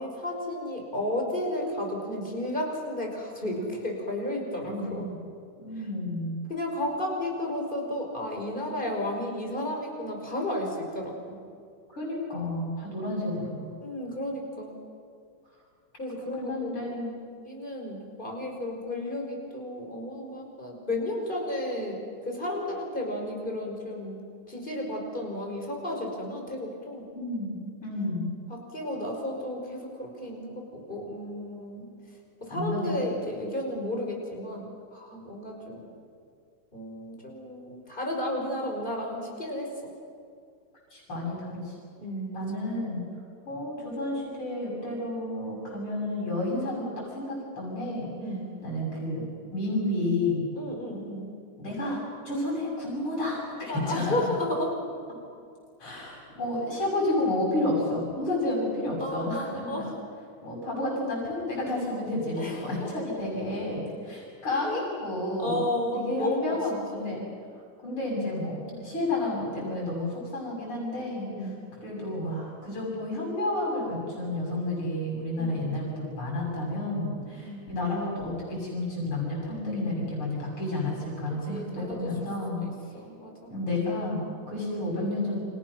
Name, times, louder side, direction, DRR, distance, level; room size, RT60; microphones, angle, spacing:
voice 1, 0.0-5.1 6.5-11.4 13.8-14.7 16.0-16.9 17.5-27.0 28.5-31.9 32.4-35.9 36.7-39.8 42.0-42.7 48.2-48.5 50.5-51.3 53.7-54.7 58.3-58.6 59.0-59.9 62.4-62.9 64.6-64.8 65.4-66.6 66.9-67.1 71.3-71.5 75.4-75.7 77.1-77.6 81.5-82.3 82.6-83.5, left 1 dB, 20° left, 0 dB, 5.5 m, -33 dB
voice 2, 4.6-5.0 5.6-6.3 11.9-13.7 16.2-17.1 27.1-27.5 27.8-28.3 32.5-33.0 40.9-41.8 42.3-43.0 43.5-48.1 48.6-49.2 49.5-50.4 51.6-54.3 55.8-59.8 60.4-65.6 65.9-67.3 67.8-71.5 71.8-82.6 83.5-85.4, left 1 dB, 85° left, -4 dB, 7.7 m, -31 dB
29.5 x 27.0 x 6.3 m, 2.3 s
omnidirectional pair, 2.3 m